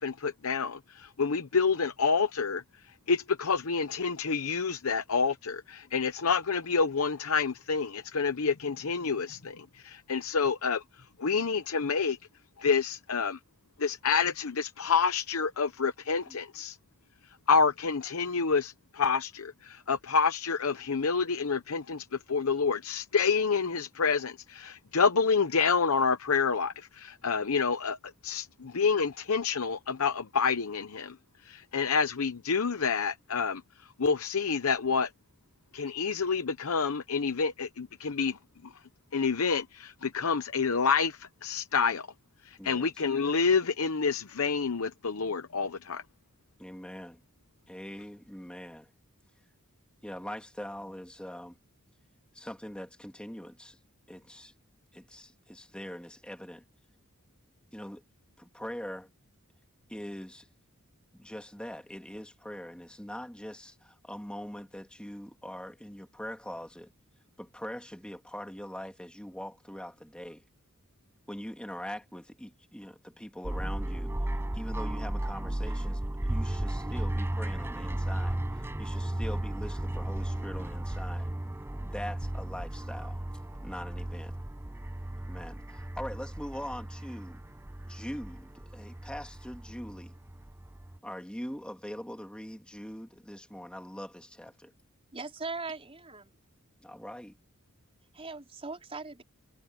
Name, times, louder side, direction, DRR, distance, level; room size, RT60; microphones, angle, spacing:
voice 1, 0.0-12.2 12.6-13.4 13.8-16.8 17.5-28.5 28.8-31.2 31.4-35.1 35.7-38.7 39.1-42.1 42.4-46.0, left 5 dB, 70° left, 0.8 m, -28 dB
voice 2, 42.6-42.9 46.6-47.2 47.7-48.9 50.0-51.6 52.3-53.8 54.1-54.5 54.9-56.6 57.7-58.0 58.4-59.1 59.9-60.5 61.1-66.9 67.4-70.4 71.3-74.1 74.5-81.3 81.8-83.2 83.6-84.3 85.3-87.4 87.9-90.2 91.0-94.7 96.8-97.4, equal, 5° left, 2.4 m, -42 dB
sound 1, 73.4-91.0, right 1 dB, 10° right, 0.5 m, -35 dB
voice 3, 95.1-96.4 98.1-99.2, right 3 dB, 25° right, 4.8 m, -39 dB
head